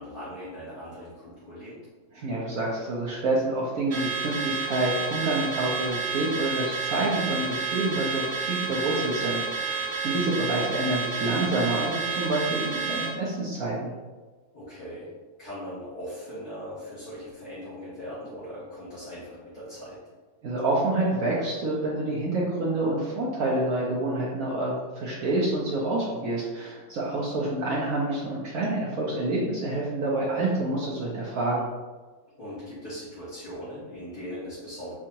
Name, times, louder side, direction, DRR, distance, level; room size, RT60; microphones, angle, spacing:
voice 1, 0.0-1.7 14.5-15.1 15.4-20.0 32.4-34.9, equal, 30° left, -13 dB, 1.3 m, -39 dB
voice 2, 2.1-13.9 20.4-31.6, right 2 dB, 70° right, -5 dB, 1.1 m, -28 dB
Car / Alarm, 3.9-13.2, right 5 dB, 85° right, 0.4 m, -30 dB
4.4 x 2.4 x 2.8 m, 1.3 s
omnidirectional pair, 1.6 m